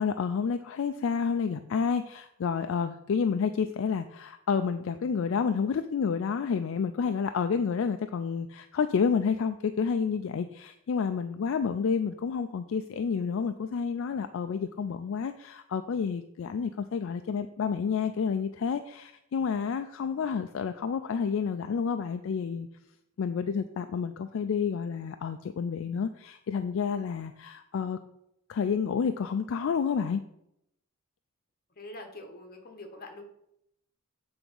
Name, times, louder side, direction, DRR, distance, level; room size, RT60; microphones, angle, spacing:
voice 1, 0.0-22.7 23.2-28.0 28.5-30.2, left 6 dB, 65° left, 8 dB, 0.3 m, -29 dB
voice 2, 31.8-33.2, left 2 dB, 45° left, 4 dB, 1.1 m, -44 dB
7.7 x 3.5 x 5.3 m, 0.79 s
head